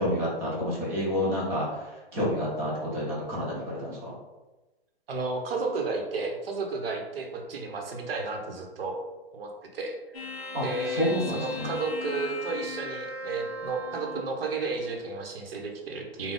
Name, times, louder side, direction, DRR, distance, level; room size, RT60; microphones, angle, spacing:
voice 1, 0.0-1.7 2.1-4.1 10.5-10.6 11.0-11.7, equal, 10° right, -7 dB, 0.5 m, -29 dB
voice 2, 5.1-9.0 9.3-10.0 10.6-16.3, right 3 dB, 65° right, 2 dB, 1.0 m, -32 dB
sound 1, 10.1-14.3, left 3 dB, 35° left, 0.7 m, -38 dB
4.1 x 2.2 x 3.8 m, 1.1 s
hypercardioid pair, 160°, 31 cm